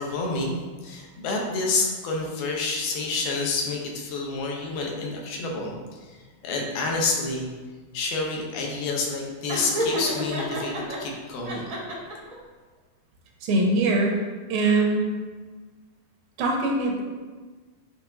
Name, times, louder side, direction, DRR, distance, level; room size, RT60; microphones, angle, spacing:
voice 1, 0.0-5.8 6.1-6.2 6.4-7.5 7.9-11.7, left 3 dB, 80° left, 0 dB, 2.8 m, -28 dB
Laughter, 9.5-11.0 11.4-12.3, equal, 40° right, 1.2 m, -29 dB
voice 2, 13.4-14.2 14.5-15.1 16.4-17.0, right 2 dB, 75° right, 0 dB, 2.6 m, -22 dB
10.0 x 4.2 x 2.7 m, 1.4 s
omnidirectional pair, 4.3 m